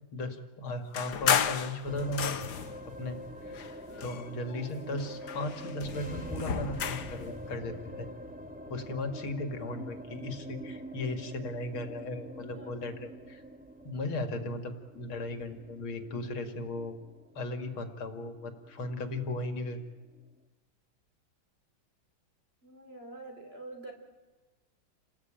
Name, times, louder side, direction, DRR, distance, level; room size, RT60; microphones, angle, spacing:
voice 1, 0.1-2.4 3.0-3.7 4.0-8.1 8.7-13.4 13.8-16.9 17.3-19.8, left 2 dB, 90° left, 7 dB, 3.1 m, -36 dB
sound 1, 0.9-2.8 3.5-4.7 5.0-7.2, left 8 dB, 55° left, 1.6 m, -32 dB
sound 2, 1.8-20.3, equal, 5° right, 1.8 m, -45 dB
voice 2, 22.6-23.9, right 2 dB, 30° right, 3 dB, 4.1 m, -47 dB
29.5 x 19.5 x 9.0 m, 1.2 s
omnidirectional pair, 2.2 m